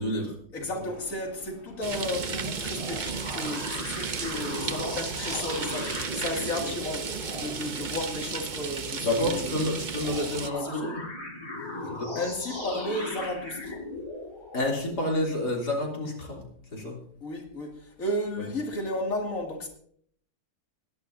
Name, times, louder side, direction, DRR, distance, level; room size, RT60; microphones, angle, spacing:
voice 1, 0.0-0.4 9.0-11.0 11.9-12.2 14.5-17.0, left 1 dB, 70° left, 3.8 m, -29 dB
voice 2, 0.5-9.6 10.6-11.0 12.1-13.8 17.2-19.7, left 1 dB, 50° left, 2.9 m, -33 dB
sound 1, 0.8-2.4 2.7-7.5 10.0-14.8, left 2 dB, 25° left, 3.8 m, -38 dB
sound 2, 1.8-10.5, right 5 dB, 40° right, 0.7 m, -34 dB
21.0 x 11.5 x 2.7 m
omnidirectional pair, 1.8 m